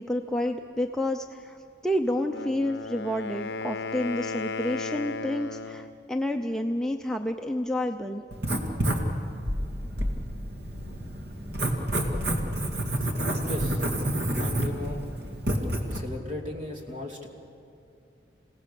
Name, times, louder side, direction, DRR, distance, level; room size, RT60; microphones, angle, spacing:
voice 1, 0.0-1.6 1.8-8.2, left 1 dB, 5° left, 3 dB, 0.6 m, -29 dB
Wind instrument woodwind instrument, 2.2-6.0, left 4 dB, 65° left, 0.6 m, -35 dB
Writing, 8.3-16.0, right 1 dB, 65° right, 2.2 m, -29 dB
voice 2, 13.4-13.8 14.3-15.1 15.9-17.3, left 2 dB, 40° right, 1 dB, 2.8 m, -36 dB
28.0 x 17.5 x 7.0 m, 2.6 s
head